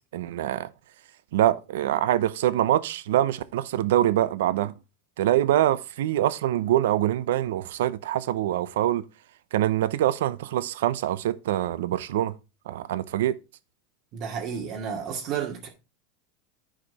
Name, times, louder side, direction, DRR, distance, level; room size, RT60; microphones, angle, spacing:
voice 1, 0.1-0.7 1.3-4.7 5.2-9.0 9.5-12.3 12.7-13.4, right 13 dB, 80° right, 0.7 m, -24 dB
voice 2, 14.1-15.7, right 7 dB, 45° right, 2.4 m, -31 dB
10.0 x 5.0 x 4.1 m
supercardioid pair, 130°, 0 cm